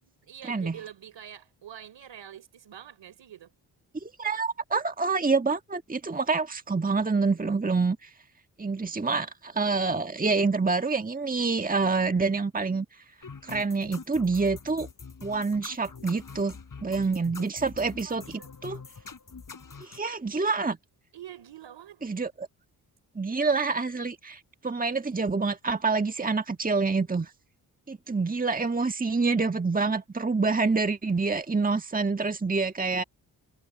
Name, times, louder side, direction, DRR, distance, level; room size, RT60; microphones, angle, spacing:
voice 1, 0.0-3.5 18.0-18.5 21.1-22.1, right 10 dB, 70° right, 4.5 m, -46 dB
voice 2, 4.0-8.1 8.6-12.8 13.4-14.9 15.2-16.5 16.8-18.2 18.6-18.8 19.8-20.8 22.0-22.5 23.1-27.3 27.9-33.0, right 4 dB, 20° right, 1.6 m, -27 dB
sound 1, 13.2-20.0, left 5 dB, 45° left, 5.7 m, -44 dB
supercardioid pair, 45°, 45 cm